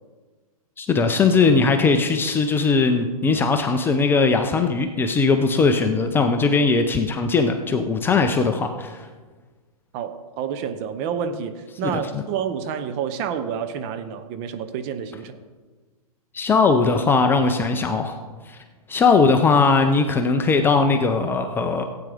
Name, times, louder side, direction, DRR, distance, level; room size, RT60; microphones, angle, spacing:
voice 1, 0.8-9.1 11.8-12.2 16.3-18.2 18.5-18.6 18.9-21.8, left 4 dB, 10° left, 6 dB, 0.5 m, -19 dB
voice 2, 9.9-15.4, right 7 dB, 30° right, 9 dB, 0.8 m, -29 dB
16.5 x 8.8 x 3.5 m, 1.4 s
hypercardioid pair, 130°, 19 cm